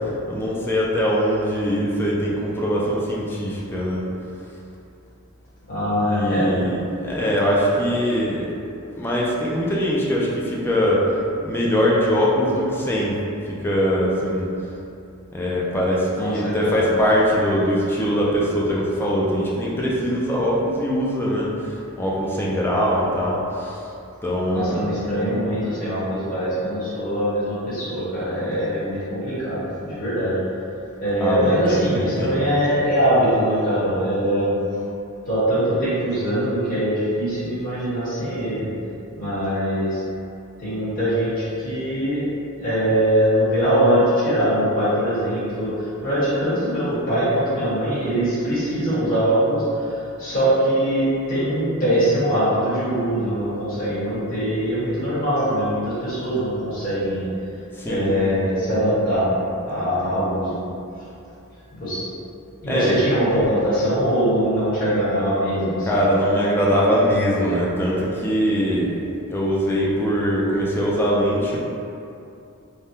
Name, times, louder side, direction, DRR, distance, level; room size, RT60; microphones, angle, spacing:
voice 1, 0.3-4.1 6.0-8.5 8.9-13.2 13.5-14.5 15.3-23.8 24.2-24.9 31.2-32.5 57.7-58.3 62.7-63.0 65.9-68.9 69.3-71.6, equal, 10° left, -5 dB, 0.3 m, -22 dB
voice 2, 5.7-6.5 16.2-16.8 24.5-30.4 31.0-34.5 35.3-38.6 39.1-40.0 40.6-42.2 42.6-57.3 57.9-59.3 59.7-60.6 61.7-62.0 62.6-66.0, equal, 40° left, -12 dB, 1.2 m, -22 dB
3.4 x 2.2 x 2.7 m, 2.7 s
head